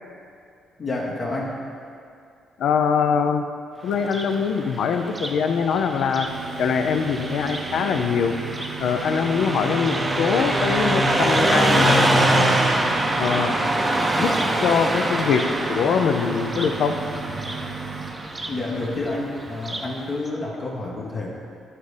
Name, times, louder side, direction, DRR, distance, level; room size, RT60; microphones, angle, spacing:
voice 1, 0.8-1.6 18.5-21.3, left 2 dB, 45° left, -3 dB, 1.0 m, -29 dB
voice 2, 2.6-3.4 3.8-6.3 6.6-8.4 8.8-12.6 13.2-13.5 14.2-17.0, left 6 dB, 75° left, 7 dB, 0.4 m, -23 dB
Car passing by, 3.9-19.9, right 1 dB, 20° right, 0.5 m, -24 dB
sound 1, 6.3-19.2, right 7 dB, 75° right, 0.7 m, -37 dB
9.1 x 4.1 x 3.3 m, 2.4 s
cardioid pair, 90°, 0 cm